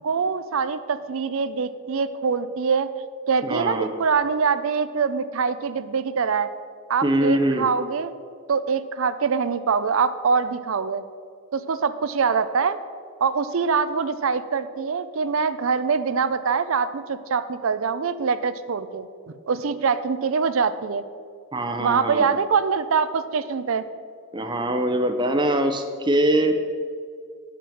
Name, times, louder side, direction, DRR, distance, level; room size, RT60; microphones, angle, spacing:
voice 1, 0.0-2.9 3.3-6.5 6.9-8.1 8.5-11.0 11.5-12.8 13.2-21.0 21.8-23.8, right 5 dB, 65° right, 12 dB, 0.5 m, -24 dB
voice 2, 3.4-3.9 7.0-7.7 21.5-22.3 24.3-26.6, right 1 dB, 20° right, 6 dB, 0.6 m, -23 dB
10.5 x 5.9 x 7.0 m, 2.2 s
head